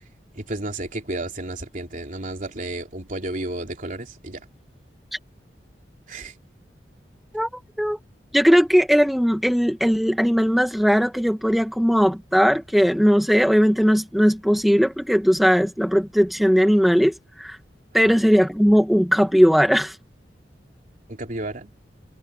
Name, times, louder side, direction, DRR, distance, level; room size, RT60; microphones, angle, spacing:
voice 1, 0.4-4.4 6.1-6.3 18.1-18.2 21.1-21.7, right 2 dB, 50° right, 3.4 m, -32 dB
voice 2, 8.3-17.6 17.9-20.0, equal, ahead, 1.3 m, -18 dB
head